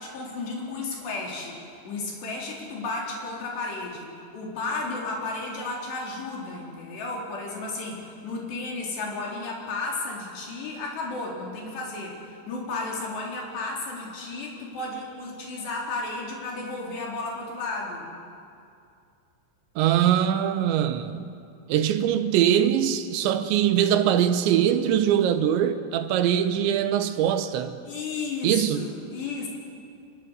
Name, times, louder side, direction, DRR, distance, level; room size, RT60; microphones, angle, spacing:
voice 1, 0.0-18.1 27.9-29.5, left 3 dB, 60° left, 6.0 m, -33 dB
voice 2, 19.8-21.3 21.7-27.8 28.4-28.9, right 10 dB, 75° right, 3.1 m, -22 dB
25.0 x 22.0 x 8.2 m
omnidirectional pair, 5.6 m